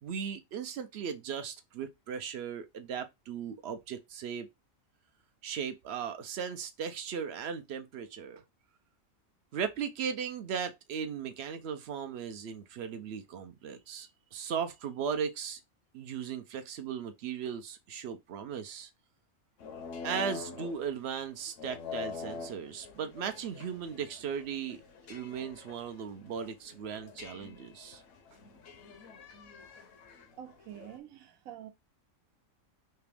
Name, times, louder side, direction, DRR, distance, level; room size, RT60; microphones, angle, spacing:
voice 1, 0.0-4.5 5.4-8.4 9.5-15.6 15.9-18.9 20.0-24.8 25.1-28.0, right 7 dB, 65° right, 0.7 m, -37 dB
sound 1, 19.6-31.0, left 5 dB, 70° left, 1.0 m, -46 dB
voice 2, 30.3-31.7, right 11 dB, 80° right, 1.1 m, -47 dB
3.3 x 2.9 x 3.3 m
omnidirectional pair, 1.4 m